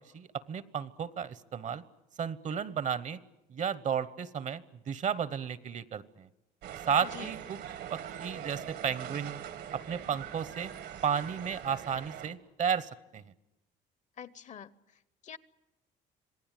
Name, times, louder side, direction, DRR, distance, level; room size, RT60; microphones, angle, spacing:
voice 1, 0.1-1.8 2.2-3.2 3.5-6.3 6.9-7.6 7.9-9.4 9.7-10.7 11.0-13.3, right 7 dB, 45° right, 17 dB, 1.0 m, -33 dB
sound 1, 6.6-12.3, right 9 dB, 75° right, 2.1 m, -43 dB
voice 2, 14.2-15.4, left 8 dB, 45° left, 17 dB, 0.9 m, -47 dB
26.5 x 18.5 x 9.1 m, 0.94 s
cardioid pair, 110°, 17 cm